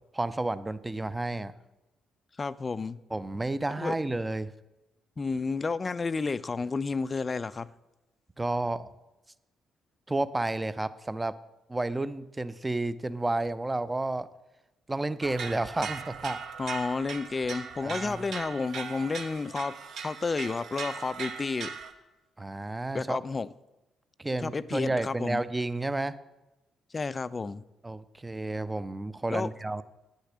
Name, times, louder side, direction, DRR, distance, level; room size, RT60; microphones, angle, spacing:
voice 1, 0.1-1.5 3.1-4.5 8.4-8.9 10.1-11.4 11.7-14.3 14.9-16.4 17.8-18.2 22.4-23.2 24.2-26.2 27.8-29.8, right 2 dB, 15° right, 15 dB, 0.5 m, -31 dB
voice 2, 2.4-3.0 3.8-4.0 5.2-7.7 16.6-19.8 20.0-21.7 22.9-23.5 24.4-25.4 26.9-27.6 29.3-29.5, left 4 dB, 30° left, 17 dB, 0.4 m, -31 dB
sound 1, 15.2-21.9, right 5 dB, 55° right, 0.9 m, -39 dB
9.6 x 6.5 x 6.4 m, 0.99 s
figure-of-eight pair, 40°, 0 cm